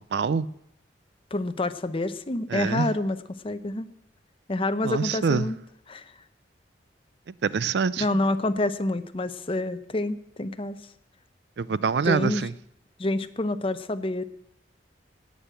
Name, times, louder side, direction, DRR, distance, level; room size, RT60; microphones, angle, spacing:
voice 1, 0.1-0.5 2.5-2.9 4.8-5.5 7.4-8.1 11.6-12.5, right 5 dB, 65° right, 19 dB, 0.4 m, -25 dB
voice 2, 1.3-3.9 4.5-5.6 5.9-6.1 8.0-10.8 12.0-12.4 13.0-14.2, left 2 dB, 30° left, 11 dB, 0.7 m, -28 dB
11.5 x 9.2 x 9.0 m, 0.80 s
head